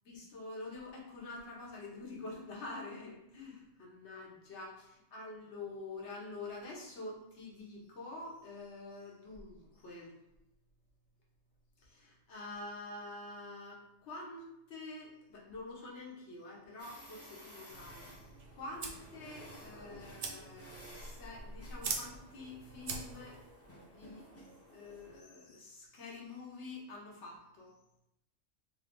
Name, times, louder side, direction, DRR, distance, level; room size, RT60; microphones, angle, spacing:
voice 1, 0.0-10.2 11.8-24.3 24.7-27.7, left 2 dB, 65° left, -3 dB, 1.2 m, -47 dB
sound 1, 16.8-25.2, equal, 20° left, 0.4 m, -55 dB
sound 2, 17.7-23.5, right 4 dB, 60° right, 0.6 m, -44 dB
3.5 x 2.5 x 3.6 m, 0.87 s
omnidirectional pair, 1.3 m